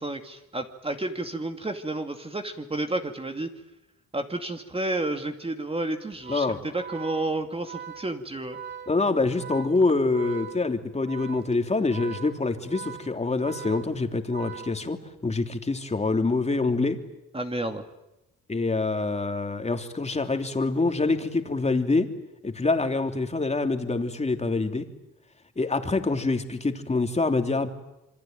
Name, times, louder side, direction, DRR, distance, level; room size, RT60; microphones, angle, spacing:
voice 1, 0.0-3.5 4.1-6.5 6.7-8.6 17.3-17.8, right 2 dB, 20° right, 5 dB, 2.4 m, -31 dB
Organ, 6.1-15.3, right 8 dB, 35° right, 3.8 m, -42 dB
voice 2, 8.9-17.0 18.5-22.1 22.4-24.9 25.6-27.7, left 3 dB, 20° left, 5 dB, 3.2 m, -25 dB
27.5 x 24.0 x 9.1 m, 0.92 s
cardioid pair, 90°, 30 cm